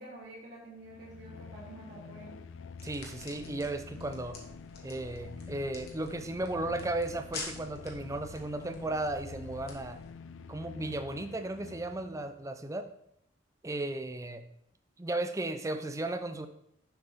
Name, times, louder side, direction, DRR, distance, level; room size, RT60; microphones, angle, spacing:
voice 1, 0.0-2.4, right 1 dB, 60° right, -7 dB, 2.5 m, -48 dB
sound 1, 0.7-12.4, left 5 dB, 75° left, 0.4 m, -47 dB
sound 2, 2.8-10.1, left 3 dB, 50° left, 1.4 m, -48 dB
voice 2, 2.8-4.4 4.8-10.0 10.5-12.9 13.6-14.4 15.0-16.5, right 2 dB, 15° right, 8 dB, 0.4 m, -35 dB
7.0 x 4.1 x 5.1 m, 0.73 s
head